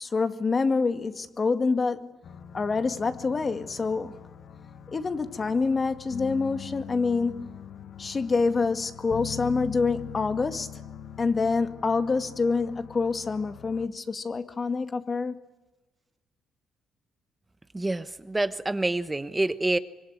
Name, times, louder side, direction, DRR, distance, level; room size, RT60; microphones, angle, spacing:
voice 1, 0.0-2.1 2.5-4.2 4.9-7.5 8.0-10.7 11.2-15.4, left 4 dB, 35° left, 2.0 m, -26 dB
sound 1, 2.2-13.9, left 8 dB, 65° left, 1.4 m, -42 dB
voice 2, 17.7-19.8, right 2 dB, 15° right, 1.1 m, -27 dB
25.0 x 23.5 x 9.7 m
cardioid pair, 90°, 0 cm